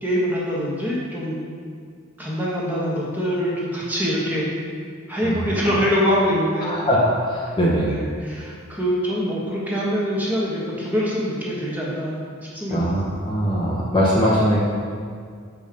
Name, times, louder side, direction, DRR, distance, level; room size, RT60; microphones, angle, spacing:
voice 1, 0.0-1.4 2.2-4.5 5.1-6.7 7.8-12.1 12.5-12.9, equal, 10° right, -6 dB, 1.4 m, -24 dB
voice 2, 6.6-7.0 7.3-7.9 12.7-14.6, equal, 20° left, -6 dB, 0.9 m, -21 dB
7.2 x 5.5 x 5.1 m, 2.1 s
head